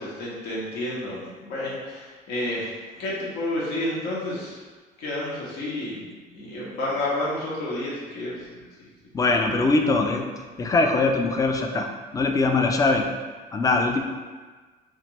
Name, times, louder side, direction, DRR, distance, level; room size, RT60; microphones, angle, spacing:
voice 1, 0.0-4.6 5.0-8.9 9.3-9.4, left 1 dB, 80° left, -6 dB, 1.0 m, -30 dB
voice 2, 9.1-10.2 10.6-11.9 12.1-13.1 13.5-14.0, left 3 dB, 20° left, 3 dB, 0.3 m, -21 dB
3.1 x 2.4 x 3.0 m, 1.4 s
cardioid pair, 110°, 17 cm